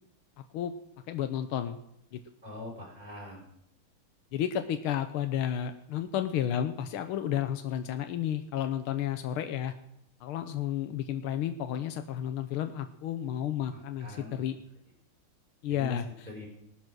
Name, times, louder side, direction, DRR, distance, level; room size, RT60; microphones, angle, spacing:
voice 1, 0.4-0.7 1.1-1.8 2.1-2.2 4.3-9.7 10.2-14.6 15.6-16.3, left 10 dB, 80° left, 8 dB, 1.7 m, -32 dB
voice 2, 2.4-3.4 13.7-14.4 15.8-16.0 16.3-16.5, left 1 dB, 20° right, -2 dB, 5.1 m, -42 dB
19.0 x 9.9 x 6.3 m, 0.77 s
omnidirectional pair, 2.4 m